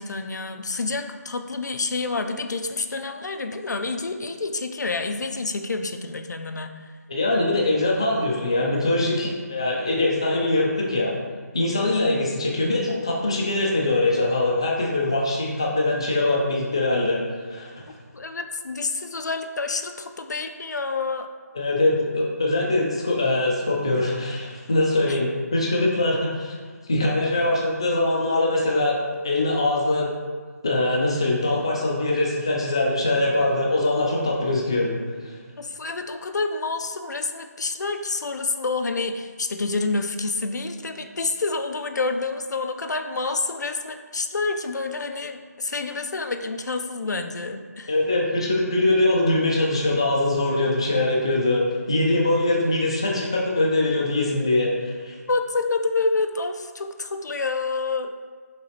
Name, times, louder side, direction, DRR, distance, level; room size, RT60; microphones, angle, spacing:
voice 1, 0.0-6.9 18.1-21.3 25.1-25.2 35.6-47.9 55.3-58.1, left 3 dB, 85° left, 6 dB, 0.4 m, -28 dB
voice 2, 7.1-11.1 11.5-17.2 17.5-17.7 21.6-26.6 26.9-29.0 29.2-30.1 30.6-35.0 47.9-55.2, left 2 dB, 15° left, -3 dB, 0.3 m, -22 dB
5.7 x 3.0 x 2.8 m, 1.5 s
figure-of-eight pair, 175°, 9 cm